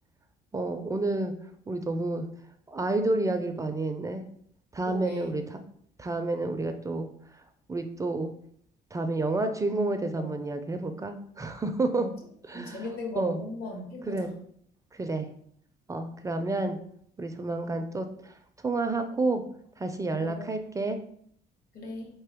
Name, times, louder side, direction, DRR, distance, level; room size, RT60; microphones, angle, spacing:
voice 1, 0.5-1.3 1.7-2.3 2.7-4.2 4.7-5.6 6.0-7.1 7.7-8.3 8.9-12.1 12.5-12.8 13.2-13.4 14.1-14.3 14.9-15.3 15.9-16.8 17.2-18.3 18.6-19.4 19.8-21.0, right 2 dB, 20° right, 7 dB, 0.4 m, -29 dB
voice 2, 4.9-5.3 10.2-10.3 11.9-12.0 12.5-14.3 20.2-20.5 21.7-22.1, left 1 dB, 65° left, 1 dB, 1.6 m, -37 dB
4.2 x 3.7 x 3.4 m, 0.65 s
cardioid pair, 110°, 17 cm